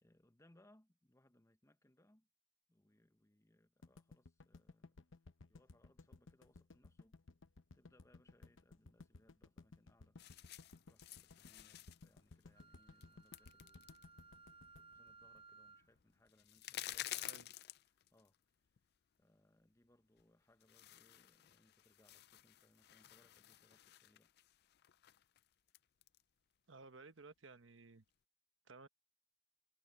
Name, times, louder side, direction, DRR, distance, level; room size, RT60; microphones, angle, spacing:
voice 1, 0.0-2.3 2.7-5.0 5.5-7.2 7.7-10.2 10.8-14.3 14.7-17.6 17.8-18.4 19.2-24.3, left 1 dB, 15° left, 1.0 m, -72 dB
sound 1, 3.8-16.0, left 3 dB, 90° left, 0.9 m, -59 dB
sound 2, 10.2-18.4 18.7-18.8 20.2-20.3 20.6-26.2, left 14 dB, 55° left, 0.4 m, -53 dB
Wind instrument woodwind instrument, 12.5-15.9, right 4 dB, 30° right, 0.5 m, -62 dB
voice 2, 26.7-28.0 28.7-28.9, right 3 dB, 80° right, 1.1 m, -57 dB
head